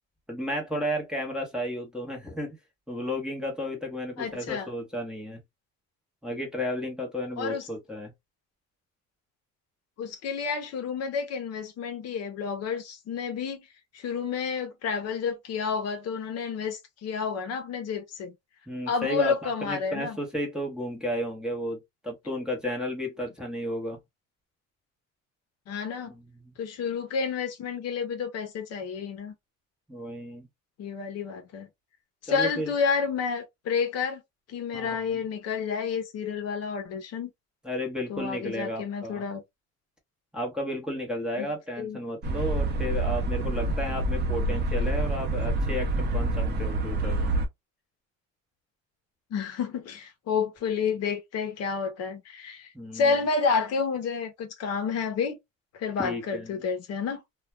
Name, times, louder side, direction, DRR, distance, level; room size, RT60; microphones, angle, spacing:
voice 1, 0.3-2.6 2.9-5.4 6.2-8.1 18.7-24.0 26.1-26.5 29.9-30.5 32.3-32.7 34.7-35.2 37.6-39.2 40.3-47.4 52.7-53.2 56.0-56.5, left 1 dB, 5° right, 0.9 m, -33 dB
voice 2, 4.2-4.7 7.4-7.7 10.0-13.6 13.9-18.3 18.9-20.2 25.7-26.1 26.6-29.3 30.8-31.7 32.2-34.2 34.5-37.3 38.1-39.4 41.4-41.5 41.8-42.0 49.3-55.4 55.7-57.2, left 5 dB, 55° left, 0.7 m, -30 dB
sound 1, 42.2-47.5, right 2 dB, 35° right, 0.6 m, -27 dB
2.4 x 2.2 x 3.0 m
cardioid pair, 145°, 30 cm